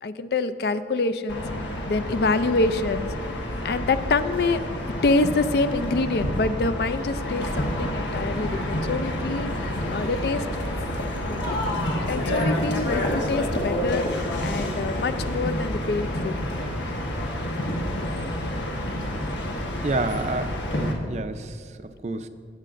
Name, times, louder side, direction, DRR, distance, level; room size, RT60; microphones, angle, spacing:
voice 1, 0.0-1.4 1.9-3.1 3.6-4.6 5.0-10.5 11.3-11.6 12.1-14.1 14.4-16.4, left 3 dB, 60° left, 12 dB, 0.4 m, -26 dB
sound 1, 1.3-20.9, left 1 dB, 85° left, 1.2 m, -28 dB
voice 2, 19.8-22.3, right 3 dB, 40° right, 10 dB, 0.4 m, -30 dB
16.5 x 8.4 x 2.5 m, 2.1 s
head